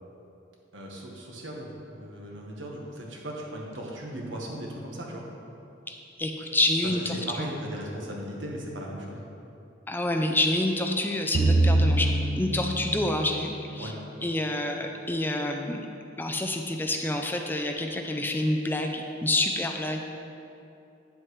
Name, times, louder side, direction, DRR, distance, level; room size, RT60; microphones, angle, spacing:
voice 1, 0.7-5.2 7.3-9.2 13.8-13.9, right 1 dB, 80° right, -1 dB, 1.4 m, -37 dB
voice 2, 5.9-7.5 9.9-12.1 12.4-13.9 14.2-15.9 16.2-20.1, left 1 dB, 10° left, 3 dB, 0.4 m, -28 dB
sound 1, 11.3-13.7, right 2 dB, 50° right, 0.5 m, -24 dB
9.4 x 7.5 x 3.2 m, 2.7 s
head